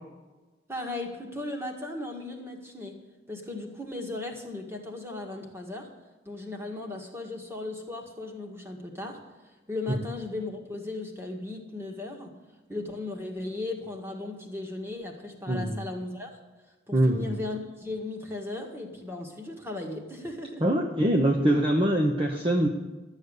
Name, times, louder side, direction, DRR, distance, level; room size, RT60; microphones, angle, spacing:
voice 1, 0.7-3.0 3.3-5.9 6.3-9.2 9.7-12.3 12.7-16.3 16.9-20.6, left 2 dB, 15° right, 2 dB, 1.9 m, -36 dB
voice 2, 15.5-15.8 16.9-17.3 20.6-22.7, right 1 dB, 30° right, 1 dB, 1.0 m, -23 dB
12.5 x 8.1 x 8.1 m, 1.2 s
head